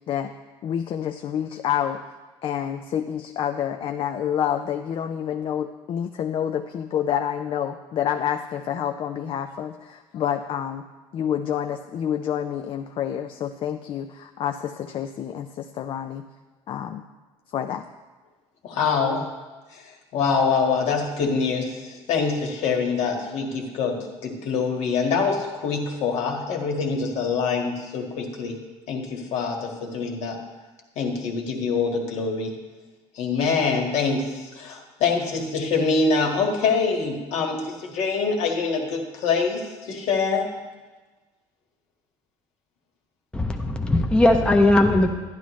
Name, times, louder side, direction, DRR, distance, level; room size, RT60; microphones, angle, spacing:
voice 1, 0.6-2.0 2.4-10.8 11.1-16.2 16.7-17.0 17.5-17.8, left 9 dB, 50° left, 7 dB, 0.4 m, -28 dB
voice 2, 18.6-19.3 19.7-19.8 20.1-28.6 28.9-30.4 31.0-32.5 33.2-40.4, left 5 dB, 70° left, 1 dB, 1.7 m, -25 dB
voice 3, 43.3-45.1, left 1 dB, 10° left, 3 dB, 0.7 m, -18 dB
11.0 x 10.5 x 3.1 m, 1.2 s
cardioid pair, 120°, 12 cm